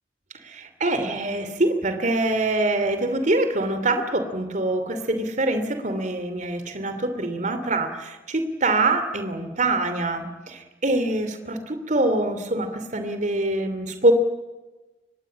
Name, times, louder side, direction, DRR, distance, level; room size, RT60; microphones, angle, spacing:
voice 1, 0.3-14.1, right 2 dB, 40° right, 9 dB, 2.7 m, -24 dB
24.0 x 20.5 x 8.6 m, 1.1 s
head